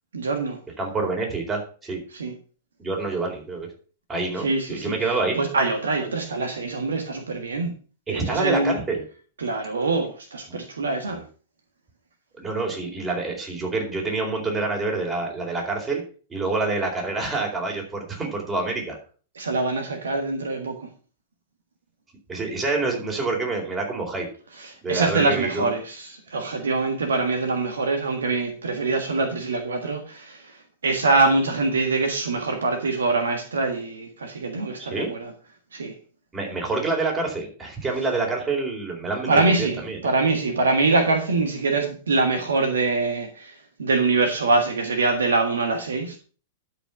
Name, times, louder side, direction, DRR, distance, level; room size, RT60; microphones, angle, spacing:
voice 1, 0.1-0.6 2.1-2.3 4.4-4.9 5.4-7.7 8.1-8.8 9.4-11.2 19.3-20.8 24.6-35.3 35.7-35.9 39.3-46.2, right 3 dB, 70° right, 1.6 m, -24 dB
voice 2, 0.8-2.0 2.8-3.7 4.1-5.4 8.1-9.0 10.5-10.6 11.1-11.2 12.4-16.0 16.3-19.0 22.3-24.3 24.8-25.7 34.8-35.1 36.3-40.0, right 3 dB, 20° right, 4.2 m, -27 dB
12.0 x 5.2 x 5.9 m
figure-of-eight pair, 100°, 0 cm